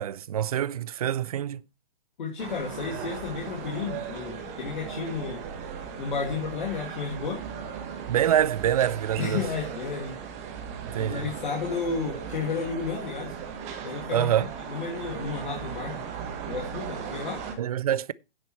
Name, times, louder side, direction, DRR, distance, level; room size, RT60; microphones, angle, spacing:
voice 1, 0.0-1.6 8.1-9.4 10.8-11.3 14.1-14.5 17.6-18.1, right 10 dB, 40° right, 0.5 m, -25 dB
voice 2, 2.2-5.4 6.0-7.4 9.2-10.2 11.0-13.3 13.8-16.0 16.5-17.4, left 5 dB, 55° left, 2.9 m, -32 dB
sound 1, 2.4-17.5, right 7 dB, 20° right, 1.6 m, -37 dB
9.8 x 7.9 x 4.5 m
figure-of-eight pair, 135°, 29 cm